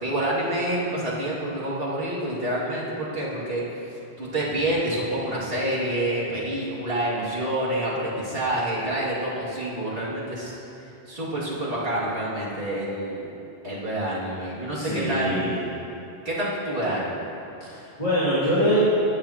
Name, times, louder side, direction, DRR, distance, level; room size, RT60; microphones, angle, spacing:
voice 1, 0.0-3.6 4.2-10.6 11.1-13.3 13.6-15.6 16.2-17.2, right 1 dB, 60° right, -9 dB, 2.6 m, -27 dB
voice 2, 14.8-15.5 17.6-18.8, equal, 35° left, -12 dB, 2.5 m, -24 dB
17.5 x 8.7 x 2.9 m, 2.8 s
omnidirectional pair, 1.1 m